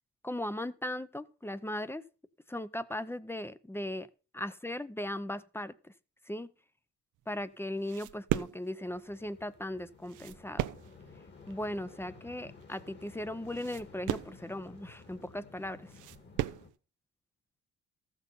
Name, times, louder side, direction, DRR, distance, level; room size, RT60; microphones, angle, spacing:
voice 1, 0.2-2.0 2.5-4.1 4.3-5.8 6.3-6.5 7.3-10.6 11.5-15.9, left 1 dB, 10° left, 0.6 m, -38 dB
sound 1, 7.2-16.8, right 14 dB, 80° right, 0.6 m, -38 dB
sound 2, 8.8-16.7, left 4 dB, 35° left, 1.9 m, -54 dB
14.0 x 6.0 x 5.5 m
cardioid pair, 90°, 30 cm